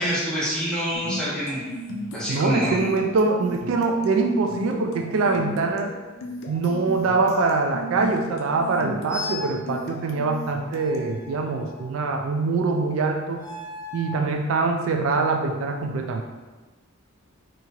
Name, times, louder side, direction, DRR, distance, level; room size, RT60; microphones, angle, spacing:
voice 1, 0.0-1.6 2.1-2.9, equal, 5° left, -10 dB, 0.9 m, -26 dB
sound 1, 1.0-11.2, left 1 dB, 75° left, 0.4 m, -36 dB
voice 2, 2.3-5.9 6.5-13.5 13.9-16.2, right 3 dB, 70° right, 3 dB, 0.3 m, -24 dB
sound 2, 9.1-9.6 10.7-12.0 13.3-14.2, left 3 dB, 35° right, 1.0 m, -36 dB
2.9 x 2.8 x 2.4 m, 1.2 s
head